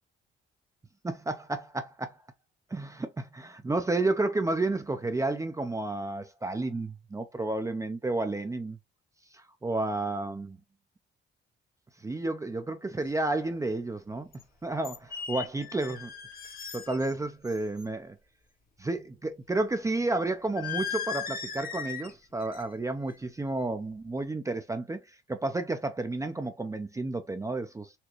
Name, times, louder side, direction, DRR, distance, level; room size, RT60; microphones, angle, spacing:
voice 1, 1.0-2.2 2.7-8.8 9.3-10.6 12.0-14.3 14.6-16.1 16.7-18.2 18.8-27.9, right 2 dB, 15° right, 0.5 m, -31 dB
sound 1, 13.0-13.1 14.3-14.4 14.8-17.1 17.4-17.8 20.6-22.1 22.4-22.8 23.1-23.4, left 7 dB, 45° left, 0.9 m, -38 dB
4.1 x 2.2 x 2.9 m
cardioid pair, 90°, 20 cm